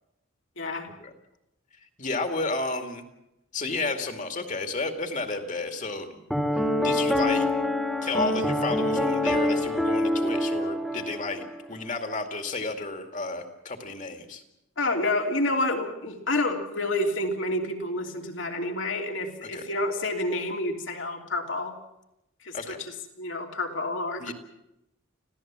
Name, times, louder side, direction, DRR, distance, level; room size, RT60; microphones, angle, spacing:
voice 1, 0.6-0.9 14.8-21.7 22.4-24.3, left 2 dB, 65° left, 2 dB, 3.1 m, -29 dB
voice 2, 2.0-3.0 3.5-6.2 6.8-7.5 8.0-14.4 19.4-19.6 22.5-22.8 24.2-24.3, left 3 dB, 35° left, 6 dB, 2.3 m, -32 dB
Piano, 6.3-11.6, left 1 dB, ahead, 1.8 m, -26 dB
26.0 x 16.0 x 7.5 m, 0.88 s
head